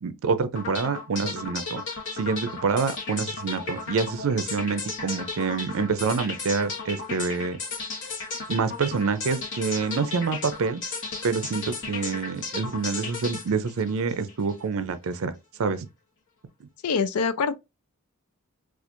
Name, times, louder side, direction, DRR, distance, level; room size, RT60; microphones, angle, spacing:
voice 1, 0.0-1.8 2.1-7.6 8.5-10.8 11.2-15.3 15.6-15.9, right 5 dB, 65° right, 0.5 m, -27 dB
sound 1, 0.5-14.6, left 4 dB, 60° left, 1.2 m, -35 dB
voice 2, 16.8-17.5, left 5 dB, 85° left, 0.5 m, -24 dB
4.3 x 2.4 x 2.5 m
head